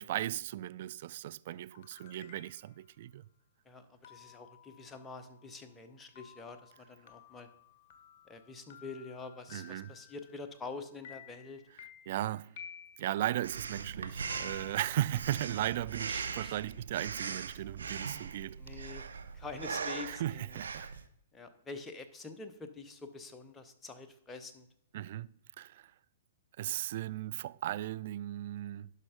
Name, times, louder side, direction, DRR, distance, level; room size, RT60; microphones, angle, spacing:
voice 1, 0.0-3.2 9.5-9.9 12.1-12.6 13.0-18.6 20.0-20.9 24.9-25.3 25.6-25.9 26.6-28.9, right 13 dB, 55° right, 0.3 m, -36 dB
sound 1, 1.5-2.8 4.0-10.7 11.0-13.2 14.3-15.6, left 8 dB, 45° left, 1.1 m, -55 dB
voice 2, 3.6-7.5 8.3-11.6 16.1-16.6 18.6-19.0 19.3-20.6 21.3-24.7, left 4 dB, 15° left, 1.0 m, -46 dB
Breathing, 13.4-21.0, right 5 dB, 80° right, 0.7 m, -40 dB
11.5 x 5.4 x 5.0 m
hypercardioid pair, 120°, 0 cm